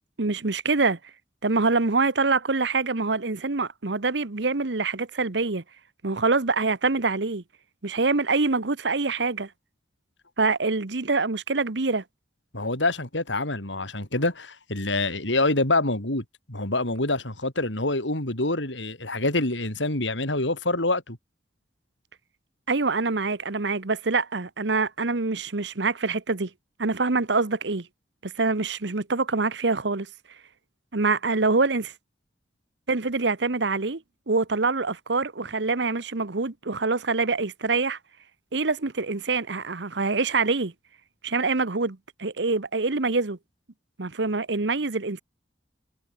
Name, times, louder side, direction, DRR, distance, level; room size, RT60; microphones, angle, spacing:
voice 1, 0.2-1.0 1.4-5.6 6.0-7.4 7.8-9.5 10.4-12.0 22.7-26.5 26.8-27.9 28.2-30.1 30.9-31.9 32.9-38.0 38.5-40.7 41.2-43.4 44.0-45.2, right 3 dB, 70° right, 1.2 m, -25 dB
voice 2, 12.5-21.2, left 2 dB, 85° left, 5.7 m, -26 dB
head